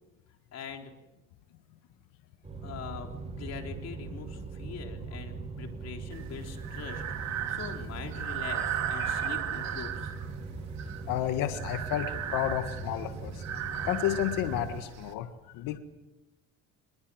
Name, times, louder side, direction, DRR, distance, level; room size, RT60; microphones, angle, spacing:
voice 1, 0.5-0.9 2.6-3.1 3.4-10.1, left 6 dB, 50° left, 3 dB, 4.0 m, -42 dB
sound 1, 2.4-14.8, right 4 dB, 20° right, 5.1 m, -40 dB
Breathing, 6.1-15.1, right 10 dB, 55° right, 2.7 m, -36 dB
voice 2, 9.0-9.3 11.1-13.4 13.9-15.3 15.5-15.8, left 12 dB, 75° left, 8 dB, 1.7 m, -31 dB
24.0 x 21.5 x 7.9 m, 1.1 s
cardioid pair, 125°, 33 cm